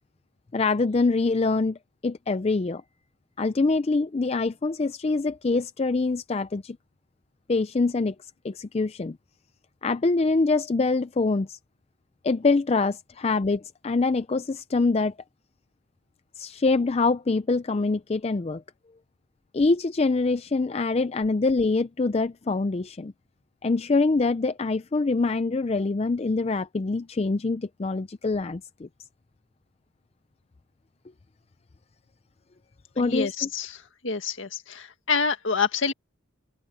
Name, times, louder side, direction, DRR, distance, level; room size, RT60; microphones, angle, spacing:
voice 1, 0.5-1.8 2.0-2.8 3.4-6.8 7.5-8.1 8.4-9.2 9.8-11.6 12.2-15.1 16.4-18.6 19.5-23.1 23.6-28.9 33.0-33.5, left 3 dB, 30° left, 0.4 m, -24 dB
voice 2, 33.0-35.9, left 5 dB, 65° left, 2.0 m, -27 dB
head